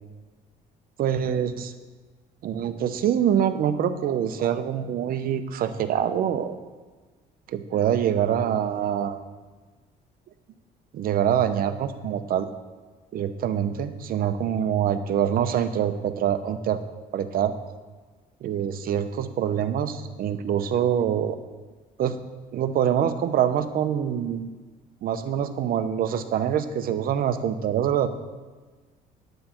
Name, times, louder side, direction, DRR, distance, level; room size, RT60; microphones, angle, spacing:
voice 1, 1.0-1.7 2.4-6.5 7.5-9.2 10.9-12.5 13.1-16.8 17.1-17.5 18.4-21.4 22.0-22.2 22.5-24.5 25.0-28.1, right 9 dB, 60° right, 11 dB, 0.8 m, -25 dB
9.4 x 8.8 x 4.5 m, 1.3 s
cardioid pair, 110°, 17 cm